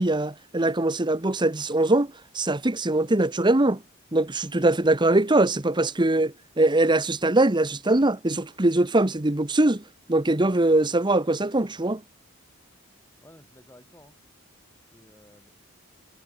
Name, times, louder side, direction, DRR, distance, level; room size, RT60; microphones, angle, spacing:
voice 1, 0.0-3.8 4.1-9.8 10.1-12.0, right 2 dB, 20° right, 1.1 m, -22 dB
voice 2, 13.2-14.2 14.8-15.5, left 1 dB, 10° left, 8.0 m, -53 dB
head